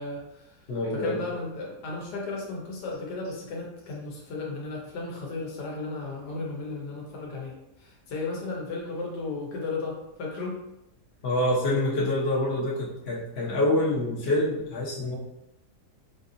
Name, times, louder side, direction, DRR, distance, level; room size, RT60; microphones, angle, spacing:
voice 1, 0.0-0.6 0.9-10.6, left 3 dB, 80° left, -2 dB, 1.4 m, -35 dB
voice 2, 0.7-1.2 11.2-15.2, left 1 dB, 45° left, -5 dB, 1.0 m, -26 dB
4.5 x 2.7 x 2.6 m, 0.88 s
omnidirectional pair, 1.7 m